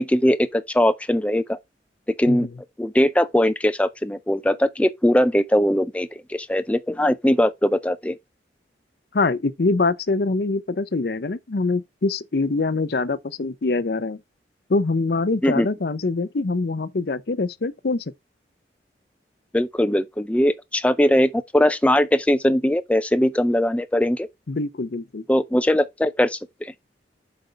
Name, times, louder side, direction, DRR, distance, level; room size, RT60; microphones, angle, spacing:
voice 1, 0.0-1.6 2.2-2.5 2.8-8.2 15.4-15.7 19.5-24.3 25.3-26.7, left 1 dB, 5° left, 0.4 m, -20 dB
voice 2, 9.1-14.2 14.7-18.0 24.5-25.2, left 3 dB, 60° left, 0.6 m, -24 dB
7.8 x 5.3 x 3.2 m
head